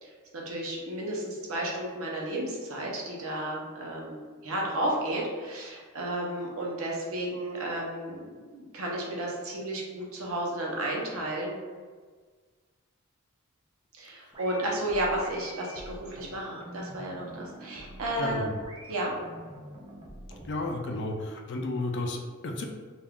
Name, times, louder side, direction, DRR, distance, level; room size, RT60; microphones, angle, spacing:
voice 1, 0.0-11.6 13.9-18.5 18.9-19.1, right 1 dB, 85° right, -3 dB, 0.7 m, -33 dB
sound 1, 14.3-20.8, right 1 dB, 20° right, 0.4 m, -46 dB
voice 2, 18.2-18.5 20.5-22.6, left 2 dB, 55° left, 2 dB, 0.4 m, -32 dB
2.4 x 2.3 x 3.4 m, 1.5 s
head